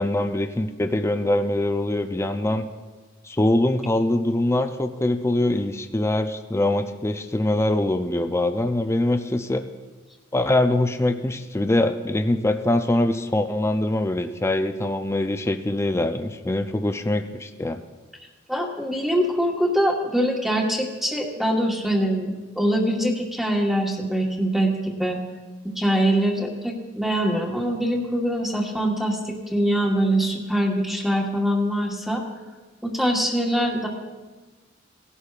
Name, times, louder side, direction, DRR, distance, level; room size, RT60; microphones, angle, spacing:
voice 1, 0.0-2.7 3.2-9.6 10.3-17.8, left 1 dB, 15° left, 7 dB, 0.4 m, -23 dB
voice 2, 18.5-25.2 25.8-32.2 32.8-33.9, equal, ahead, 0 dB, 1.3 m, -23 dB
19.0 x 11.0 x 2.4 m, 1.3 s
head